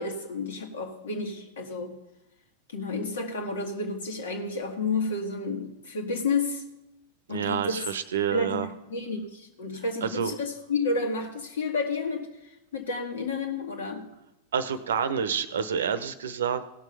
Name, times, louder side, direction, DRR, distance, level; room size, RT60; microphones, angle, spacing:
voice 1, 0.0-2.0 2.7-6.6 7.3-7.8 8.3-12.3 12.7-14.1, left 3 dB, 65° left, 4 dB, 1.9 m, -31 dB
voice 2, 7.3-8.7 10.0-10.3 14.5-16.6, right 7 dB, 65° right, 13 dB, 0.8 m, -28 dB
17.0 x 6.4 x 5.4 m, 0.95 s
figure-of-eight pair, 90°, 0 cm